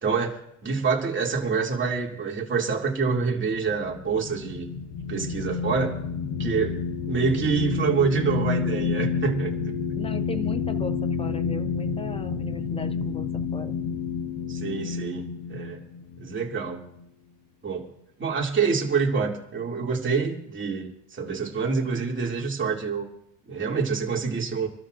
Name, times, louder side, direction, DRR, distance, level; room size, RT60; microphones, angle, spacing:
voice 1, 0.0-4.7 5.1-6.0 6.4-6.8 7.1-9.5 14.5-15.8 16.2-16.8 17.6-17.9 18.2-23.1 23.5-24.7, right 5 dB, 25° right, -1 dB, 2.6 m, -26 dB
sound 1, 3.3-17.0, left 6 dB, 50° left, 1.2 m, -30 dB
voice 2, 10.0-13.7, left 2 dB, 10° left, 10 dB, 0.8 m, -37 dB
27.0 x 13.0 x 2.6 m, 0.75 s
cardioid pair, 120°, 50 cm